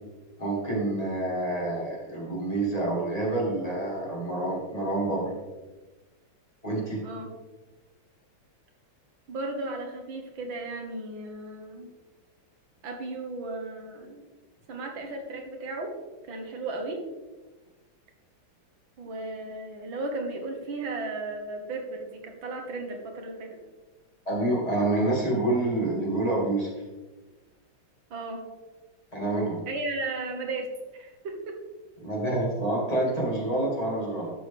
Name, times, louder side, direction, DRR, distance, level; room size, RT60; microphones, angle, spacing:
voice 1, 0.4-5.3 6.6-7.0 24.3-26.7 29.1-29.6 32.0-34.3, right 2 dB, 20° left, -4 dB, 2.1 m, -27 dB
voice 2, 9.3-11.9 12.8-14.2 14.7-15.9 16.3-17.0 19.0-23.5 28.1-28.4 29.7-30.7 31.0-31.6, right 2 dB, 75° right, 3 dB, 2.0 m, -35 dB
12.0 x 6.1 x 3.4 m, 1.2 s
omnidirectional pair, 2.2 m